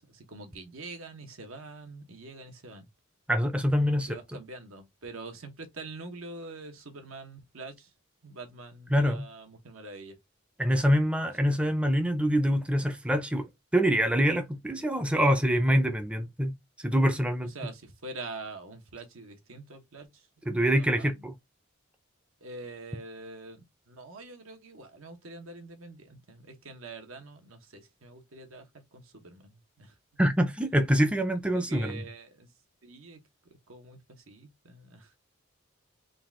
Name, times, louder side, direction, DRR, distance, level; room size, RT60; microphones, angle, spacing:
voice 1, 0.1-2.8 3.9-7.7 8.2-10.2 11.5-11.7 17.5-20.1 21.0-21.1 22.4-28.6 28.9-29.9 31.5-32.5 32.8-33.2 33.7-34.0 34.3-35.1, right 3 dB, 85° right, 1.1 m, -45 dB
voice 2, 3.3-4.4 8.9-9.3 10.6-13.5 13.7-17.5 20.5-21.3 30.2-32.1, equal, 5° right, 0.4 m, -25 dB
3.9 x 2.4 x 3.6 m
head